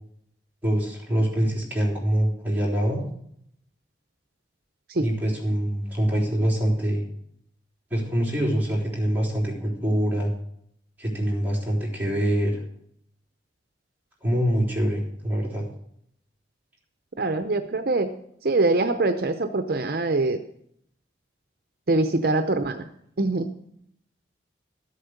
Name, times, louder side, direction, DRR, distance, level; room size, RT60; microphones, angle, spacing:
voice 1, 0.6-3.0 5.0-7.0 7.9-10.3 11.0-12.6 14.2-15.7, equal, 10° right, -4 dB, 3.9 m, -24 dB
voice 2, 17.2-18.1 18.4-20.4 21.9-22.9 23.2-23.5, right 2 dB, 55° right, 8 dB, 0.6 m, -23 dB
13.5 x 8.4 x 6.6 m, 0.71 s
head